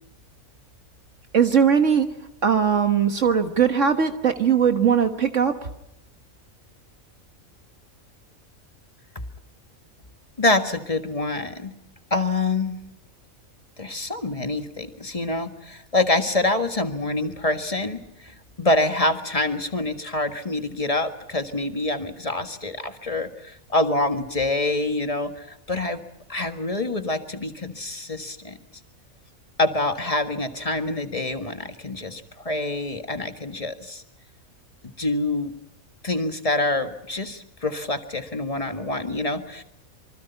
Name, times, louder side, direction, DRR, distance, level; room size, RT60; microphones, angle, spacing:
voice 1, 1.3-2.1 2.4-5.5, right 7 dB, 65° right, 6 dB, 1.7 m, -19 dB
voice 2, 10.4-11.7 12.1-12.8 13.8-26.0 26.3-28.6 29.6-34.0 34.8-35.5 36.0-39.6, left 2 dB, 25° left, 7 dB, 1.7 m, -26 dB
26.5 x 25.0 x 5.8 m, 0.80 s
omnidirectional pair, 1.4 m